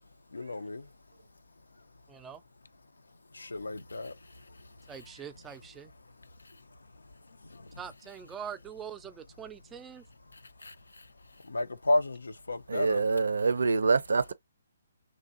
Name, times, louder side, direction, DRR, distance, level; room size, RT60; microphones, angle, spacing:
voice 1, 0.3-0.8 3.5-4.1 11.5-12.2 12.5-13.0, left 1 dB, 85° left, 0.5 m, -30 dB
voice 2, 2.1-2.4 4.9-5.9 7.8-10.0, right 8 dB, 15° right, 0.4 m, -43 dB
voice 3, 12.7-14.3, right 4 dB, 75° right, 0.4 m, -26 dB
3.2 x 2.6 x 2.5 m
figure-of-eight pair, 140°, 0 cm